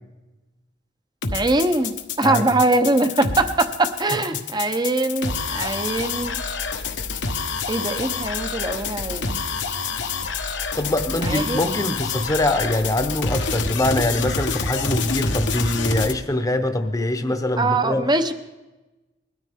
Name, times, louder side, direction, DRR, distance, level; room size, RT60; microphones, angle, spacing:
sound 1, 1.2-16.1, left 4 dB, 80° left, 1.3 m, -27 dB
voice 1, 1.3-6.4 7.7-9.4 11.2-11.6 17.2-18.3, right 2 dB, 25° right, 9 dB, 0.8 m, -22 dB
voice 2, 10.6-18.1, left 1 dB, 20° left, 8 dB, 0.9 m, -23 dB
21.0 x 13.5 x 3.6 m, 1.1 s
head